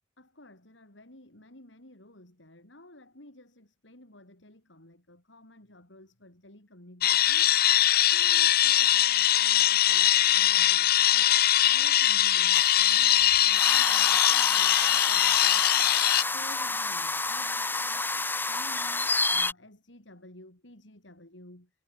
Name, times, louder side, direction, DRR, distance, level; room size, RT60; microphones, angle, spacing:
voice 1, 0.2-7.6 8.1-11.3 11.6-15.9 16.3-18.1 18.4-21.7, left 1 dB, 75° left, 5.4 m, -52 dB
sound 1, 7.0-16.2, left 12 dB, 50° left, 0.6 m, -22 dB
sound 2, 12.5-19.5, left 3 dB, 10° left, 2.1 m, -30 dB
head